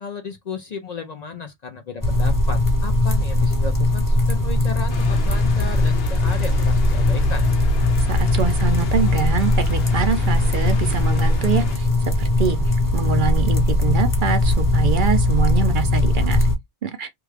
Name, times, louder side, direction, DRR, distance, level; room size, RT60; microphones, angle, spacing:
voice 1, 0.0-7.5, left 5 dB, 50° left, 0.6 m, -34 dB
sound 1, 2.0-16.5, left 2 dB, 20° left, 0.8 m, -19 dB
sound 2, 4.9-11.8, left 2 dB, 70° left, 0.9 m, -33 dB
voice 2, 8.1-11.9 12.2-16.5 16.8-17.1, right 7 dB, 55° right, 0.8 m, -24 dB
3.5 x 2.3 x 3.2 m
omnidirectional pair, 1.1 m